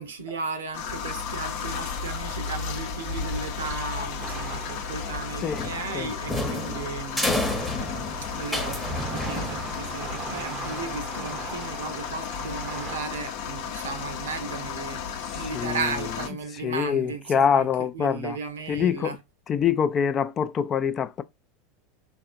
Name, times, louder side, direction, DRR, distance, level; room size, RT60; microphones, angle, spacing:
voice 1, 0.0-7.3 8.2-19.2, right 5 dB, 75° right, 0.6 m, -35 dB
sound 1, 0.7-16.3, left 6 dB, 60° left, 0.7 m, -34 dB
sound 2, 4.2-13.0, right 8 dB, 35° right, 0.6 m, -41 dB
voice 2, 5.4-6.1 15.3-18.4 18.7-19.2 19.5-21.2, left 7 dB, 35° left, 0.3 m, -26 dB
sound 3, 5.5-10.0, left 1 dB, ahead, 0.8 m, -30 dB
3.4 x 2.5 x 2.5 m
figure-of-eight pair, 80°, 0 cm